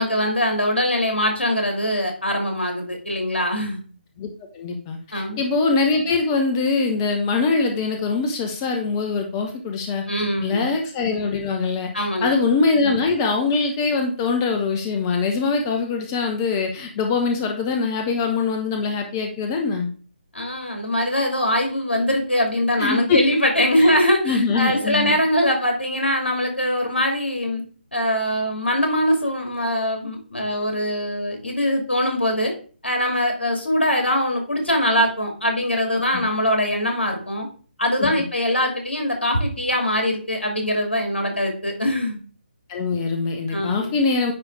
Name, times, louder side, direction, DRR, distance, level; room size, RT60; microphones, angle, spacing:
voice 1, 0.0-3.8 5.1-5.4 10.1-10.7 11.9-12.4 20.3-27.6 27.9-32.5 32.8-37.5 37.8-42.2 43.5-44.0, equal, 80° left, 2 dB, 2.6 m, -22 dB
voice 2, 4.5-10.0 10.4-19.9 22.8-23.2 23.8-23.9 24.2-25.2 36.1-36.2 38.0-38.2 42.7-44.3, left 4 dB, 20° left, 3 dB, 0.9 m, -23 dB
9.6 x 3.3 x 4.7 m, 0.41 s
figure-of-eight pair, 145°, 6 cm